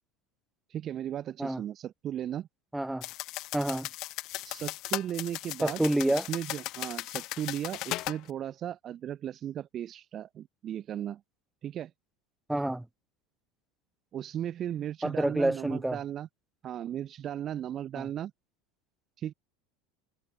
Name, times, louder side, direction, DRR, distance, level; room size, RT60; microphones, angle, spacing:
voice 1, 0.7-2.5 4.4-11.2 11.6-11.9 14.1-16.3 16.6-18.3 19.2-19.3, right 10 dB, 25° right, 1.3 m, -36 dB
voice 2, 2.7-3.1 3.5-3.9 5.6-6.3 12.5-12.9 15.0-16.0 17.9-18.1, right 1 dB, 5° right, 0.9 m, -28 dB
sound 1, 3.0-8.2, left 18 dB, 40° left, 2.6 m, -37 dB
supercardioid pair, 175°, 0 cm